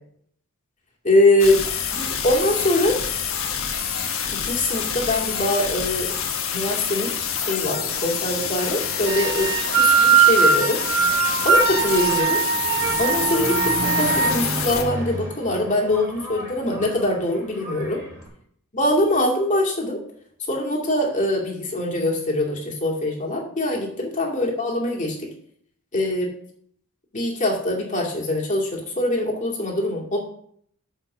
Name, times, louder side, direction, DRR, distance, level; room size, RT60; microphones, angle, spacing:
voice 1, 1.0-1.6 2.0-3.0 4.3-6.1 6.5-10.8 11.4-12.4 13.0-18.0 18.7-20.0 20.5-25.3 25.9-26.3 27.1-30.2, left 1 dB, 35° left, -2 dB, 2.3 m, -23 dB
sound 1, 1.4-14.8, left 7 dB, 65° left, 1.2 m, -27 dB
sound 2, 9.1-14.4, right 6 dB, 55° right, 1.0 m, -20 dB
Engine, 9.6-18.3, equal, 15° right, 2.4 m, -34 dB
6.6 x 6.0 x 6.7 m, 0.65 s
head